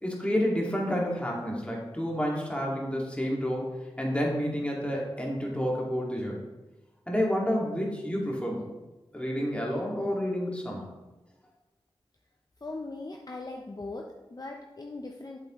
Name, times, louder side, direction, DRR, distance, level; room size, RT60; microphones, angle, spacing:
voice 1, 0.0-3.7 4.0-6.4 7.1-8.7 9.1-10.9, equal, 10° left, -3 dB, 2.2 m, -29 dB
voice 2, 12.6-15.4, left 2 dB, 40° left, 1 dB, 0.7 m, -39 dB
7.7 x 7.6 x 3.1 m, 1.1 s
wide cardioid pair, 60°, 10 cm